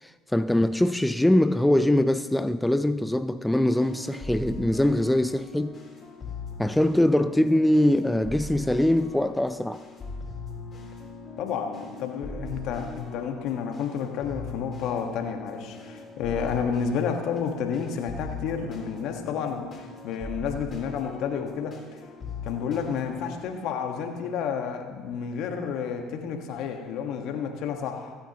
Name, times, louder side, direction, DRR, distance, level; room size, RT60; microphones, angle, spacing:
voice 1, 0.0-5.8 6.6-9.8, left 1 dB, 5° left, 0.5 m, -23 dB
sound 1, 3.5-23.4, left 2 dB, 35° left, 3.8 m, -40 dB
voice 2, 11.4-22.0 22.4-28.2, left 7 dB, 65° left, 1.5 m, -30 dB
26.0 x 8.7 x 3.0 m
hypercardioid pair, 65°, 0 cm